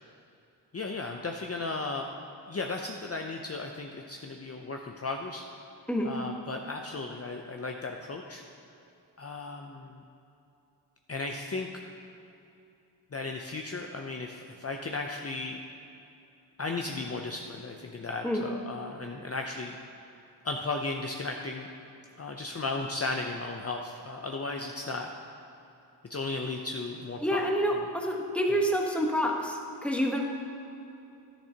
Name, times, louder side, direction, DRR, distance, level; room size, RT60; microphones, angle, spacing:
voice 1, 0.7-2.1 2.5-5.4 6.0-8.4 9.2-10.0 11.1-11.7 13.1-15.6 16.6-19.8 20.4-21.7 22.2-25.1 26.1-27.4 28.5-28.6, left 3 dB, 35° left, 2 dB, 0.6 m, -35 dB
voice 2, 27.2-30.2, equal, 5° left, 0 dB, 1.2 m, -28 dB
10.5 x 10.0 x 2.9 m, 2.8 s
cardioid pair, 50°, 42 cm